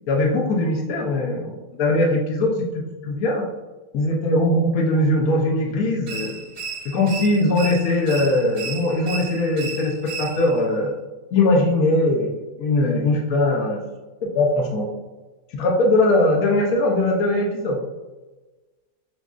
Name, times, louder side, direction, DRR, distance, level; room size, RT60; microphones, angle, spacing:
voice 1, 0.1-2.6 3.0-3.4 3.9-6.4 6.8-10.9 11.3-13.8 14.3-14.9 15.5-17.8, left 2 dB, 65° left, -1 dB, 1.2 m, -20 dB
sound 1, 6.1-10.7, right 5 dB, 65° right, 0.6 m, -34 dB
6.0 x 2.6 x 2.4 m, 1.2 s
omnidirectional pair, 1.8 m